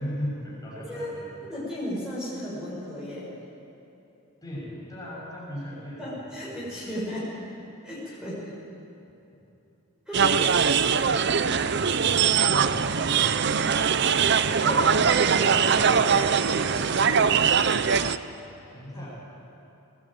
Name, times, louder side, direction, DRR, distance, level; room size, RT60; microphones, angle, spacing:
voice 1, 0.0-1.4 4.4-7.0 11.4-14.5 18.0-19.1, equal, 15° left, -5 dB, 6.7 m, -39 dB
voice 2, 1.5-3.3 6.0-7.4 7.8-8.5 10.1-10.5 14.6-17.2 18.9-19.1, equal, 5° right, -8 dB, 6.0 m, -35 dB
sound 1, 10.1-18.2, right 6 dB, 50° right, 0.6 m, -22 dB
22.0 x 18.0 x 9.0 m, 2.9 s
head